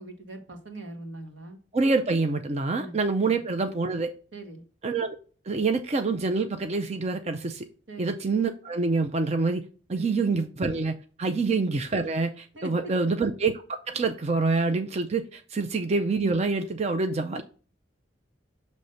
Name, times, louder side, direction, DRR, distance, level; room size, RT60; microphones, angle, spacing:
voice 1, 0.0-1.6 2.7-3.4 4.3-4.7 7.9-8.1 9.9-10.2 12.5-13.0 15.5-15.7, right 2 dB, 80° right, 4 dB, 1.4 m, -42 dB
voice 2, 1.7-4.1 4.8-5.1 5.5-7.7 8.0-9.6 9.9-17.4, right 3 dB, 35° right, 7 dB, 0.5 m, -26 dB
6.5 x 3.1 x 5.6 m, 0.40 s
head